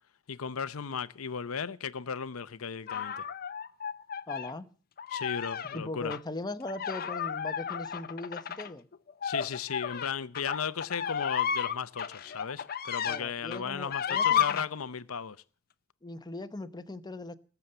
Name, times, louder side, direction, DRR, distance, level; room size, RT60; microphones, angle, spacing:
voice 1, 0.3-3.2 5.1-6.2 9.2-15.4, left 6 dB, 90° left, 0.7 m, -36 dB
sound 1, 2.9-4.5 5.0-5.8 6.1-6.2 6.7-13.2 13.5-14.7, left 8 dB, 45° left, 0.7 m, -32 dB
voice 2, 4.3-4.7 5.7-8.9 13.1-14.6 16.0-17.3, left 2 dB, 20° left, 0.9 m, -39 dB
20.0 x 7.0 x 7.9 m
head